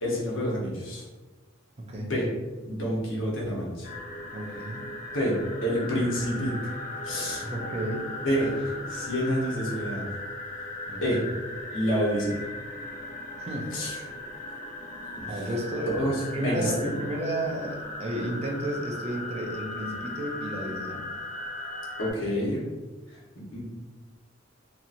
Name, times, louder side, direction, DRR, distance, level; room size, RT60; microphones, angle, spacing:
voice 1, 0.0-1.0 1.9-2.2 2.7-3.9 5.1-6.7 7.0-7.5 8.2-10.0 11.0-11.2 11.7-12.5 13.7-14.0 15.2-15.3 16.0-16.7 22.0-22.6 23.1-23.6, equal, 65° left, -4 dB, 0.9 m, -28 dB
voice 2, 1.8-2.1 4.3-4.8 7.4-8.1 10.9-11.2 13.4-13.7 15.3-15.9 16.3-21.0, right 1 dB, 30° right, 0 dB, 0.4 m, -32 dB
sound 1, 3.8-22.1, left 2 dB, 45° left, 0.5 m, -38 dB
2.8 x 2.8 x 2.4 m, 1.2 s
head